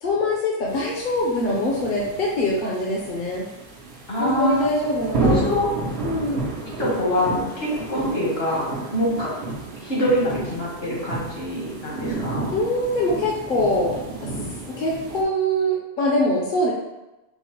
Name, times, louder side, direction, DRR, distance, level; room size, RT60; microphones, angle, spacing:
voice 1, 0.0-3.5 4.2-5.4 6.0-6.4 12.5-13.9 14.7-16.7, left 1 dB, 60° left, -3 dB, 0.8 m, -23 dB
sound 1, 0.7-15.2, right 3 dB, 80° right, 1.0 m, -32 dB
voice 2, 4.1-4.7 5.2-5.7 6.8-9.3 9.8-12.5, equal, 75° left, -6 dB, 1.8 m, -24 dB
4.5 x 2.0 x 4.4 m, 1.0 s
omnidirectional pair, 1.0 m